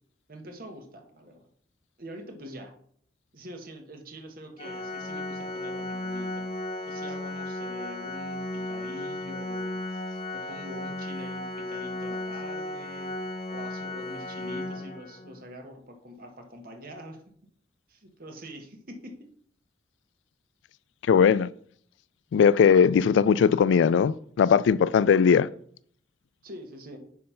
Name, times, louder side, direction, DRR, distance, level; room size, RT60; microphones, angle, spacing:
voice 1, 0.3-1.4 2.0-2.7 3.3-6.4 6.8-9.8 10.3-13.1 13.5-17.2 17.9-19.2 26.4-27.0, equal, 55° right, 1.4 m, -44 dB
Organ, 4.6-15.4, left 1 dB, 35° left, 0.9 m, -35 dB
voice 2, 21.1-21.5 22.3-25.5, left 7 dB, 85° left, 0.3 m, -19 dB
9.4 x 3.3 x 5.7 m
head